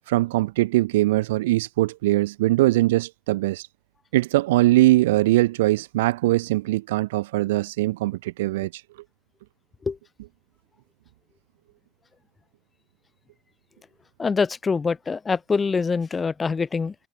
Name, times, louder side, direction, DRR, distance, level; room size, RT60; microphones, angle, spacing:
voice 1, 0.1-3.7 4.1-8.8, right 18 dB, 85° right, 1.4 m, -21 dB
voice 2, 14.2-16.9, left 5 dB, 25° left, 1.8 m, -24 dB
supercardioid pair, 95°, 0 cm